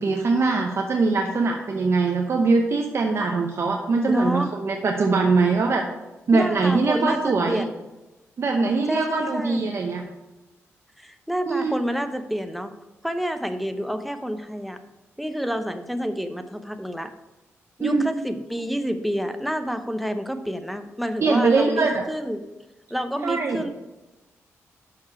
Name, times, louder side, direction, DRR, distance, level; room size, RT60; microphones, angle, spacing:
voice 1, 0.0-5.8 6.3-7.6 8.4-10.0 11.5-11.8 17.8-18.1 21.2-22.0 23.2-23.6, right 4 dB, 55° right, 2 dB, 0.8 m, -22 dB
voice 2, 4.1-4.6 6.3-7.8 8.9-9.6 11.0-12.7 13.0-14.8 15.2-17.1 17.8-22.4 22.9-23.8, equal, ahead, 8 dB, 0.7 m, -28 dB
6.2 x 5.9 x 4.4 m, 1.0 s
cardioid pair, 70°, 5 cm